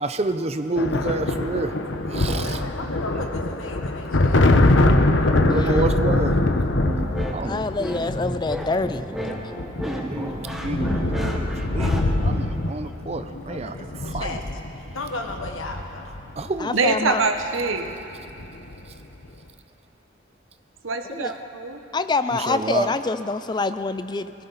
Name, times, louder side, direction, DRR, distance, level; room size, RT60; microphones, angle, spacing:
voice 1, 0.0-1.7 2.1-2.6 5.5-6.3 7.3-7.7 9.9-11.5 11.7-14.4 16.4-16.8 22.5-22.9, right 2 dB, 30° right, 9 dB, 0.5 m, -29 dB
sound 1, 0.8-16.5 17.7-17.9 18.2-18.9, left 2 dB, 70° left, 0.9 m, -23 dB
voice 2, 2.3-4.4 13.3-13.6 13.9-14.4 14.9-16.0, left 2 dB, 90° left, 3 dB, 1.5 m, -35 dB
voice 3, 5.5-5.8 7.4-9.1 16.6-17.2 21.1-21.4 21.9-24.3, left 3 dB, 20° left, 12 dB, 0.4 m, -26 dB
sound 2, 6.8-12.0, equal, ahead, 1.0 m, -31 dB
voice 4, 16.7-17.9 20.8-21.8, right 4 dB, 85° right, 6 dB, 1.0 m, -24 dB
20.0 x 17.0 x 4.0 m, 3.0 s
head